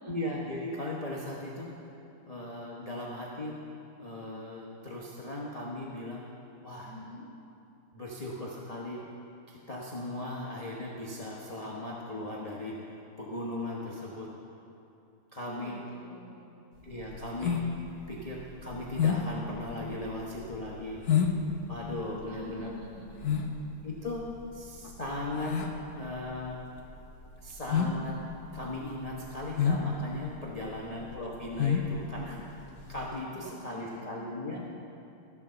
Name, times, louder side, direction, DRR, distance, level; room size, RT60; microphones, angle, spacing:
voice 1, 0.0-1.7 2.3-3.5 4.0-6.2 6.6-6.9 7.9-9.1 9.5-14.3 15.3-15.8 16.8-17.6 18.1-21.0 21.7-22.7 23.8-24.3 24.5-25.6 25.9-26.6 27.4-28.2 28.5-32.5 32.9-34.6, left 1 dB, 30° left, -5 dB, 0.6 m, -38 dB
voice 2, 6.9-7.3 15.5-16.6 22.3-23.5 30.6-30.9 33.4-34.3, right 1 dB, 50° right, -5 dB, 2.4 m, -48 dB
sound 1, 16.8-33.2, left 7 dB, 80° left, 0.6 m, -31 dB
14.5 x 4.9 x 6.8 m, 2.7 s
omnidirectional pair, 2.4 m